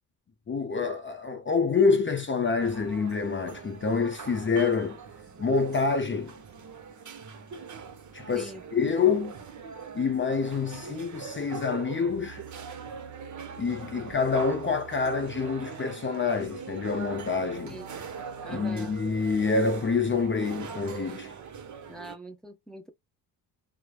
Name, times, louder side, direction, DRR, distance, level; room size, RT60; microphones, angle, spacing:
voice 1, 0.5-5.0 5.4-6.3 8.1-9.3 9.9-12.4 13.6-17.8 18.5-21.3, left 5 dB, 25° left, 0.6 m, -27 dB
sound 1, 2.6-22.2, right 6 dB, 40° right, 0.8 m, -42 dB
voice 2, 17.7-18.0 18.4-18.9 21.9-22.9, right 2 dB, ahead, 0.9 m, -43 dB
3.1 x 2.1 x 2.3 m
hypercardioid pair, 50°, 44 cm